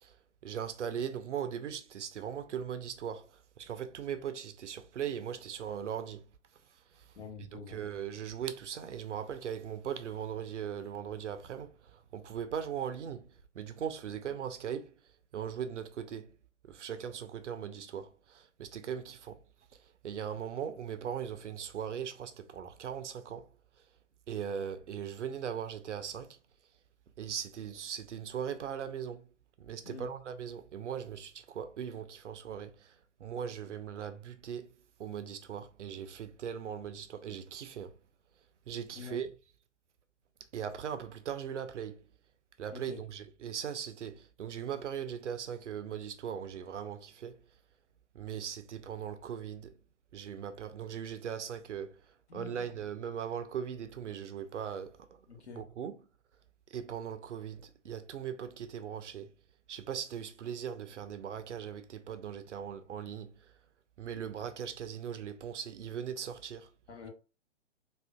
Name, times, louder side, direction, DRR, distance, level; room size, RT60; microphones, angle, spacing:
voice 1, 0.4-3.3 3.6-6.2 7.0-7.1 7.5-13.3 13.5-14.9 15.3-16.3 16.7-19.4 20.0-23.5 24.3-26.4 27.2-29.3 29.6-32.9 33.2-34.7 35.0-37.9 38.7-39.3 40.5-42.0 42.6-47.4 48.1-49.7 50.1-52.0 52.3-55.1 55.6-56.0 56.7-59.3 59.7-63.3 64.0-66.7, right 8 dB, 70° right, 0.5 m, -39 dB
voice 2, 7.2-7.8 29.8-30.1 38.9-39.2 42.7-43.0 52.3-52.8 55.3-55.6 66.9-67.1, left 6 dB, 60° left, 0.9 m, -46 dB
3.5 x 2.4 x 2.2 m
figure-of-eight pair, 125°, 37 cm